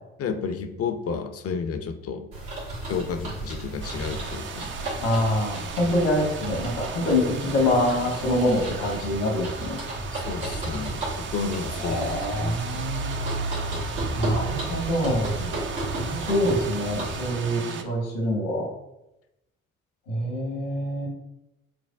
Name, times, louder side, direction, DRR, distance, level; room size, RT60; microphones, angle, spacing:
voice 1, 0.2-2.3 2.8-4.7 5.9-6.0 10.1-12.9 13.7-13.8 15.4-15.6, left 5 dB, 45° left, 7 dB, 0.5 m, -32 dB
sound 1, 2.3-17.3, right 2 dB, 80° right, 1.4 m, -33 dB
sound 2, 3.8-17.8, right 6 dB, 40° right, 0.4 m, -37 dB
voice 2, 5.0-9.8 11.8-13.1 14.1-15.4 16.0-18.7 20.1-21.1, left 1 dB, 80° left, -1 dB, 1.1 m, -25 dB
5.8 x 2.1 x 2.3 m, 0.90 s
hypercardioid pair, 45°, 32 cm